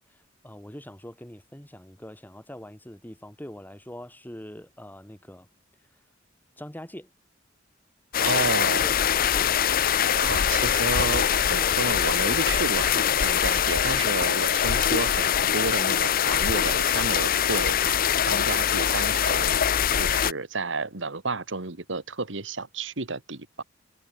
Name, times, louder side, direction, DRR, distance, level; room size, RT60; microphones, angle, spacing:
voice 1, 0.0-5.5 6.6-7.1 8.6-9.6, equal, 10° left, 3.1 m, -43 dB
sound 1, 8.1-20.3, left 9 dB, 50° left, 0.6 m, -23 dB
voice 2, 8.2-8.9 10.1-18.0 18.3-19.6 20.0-23.6, right 3 dB, 70° right, 1.9 m, -31 dB
head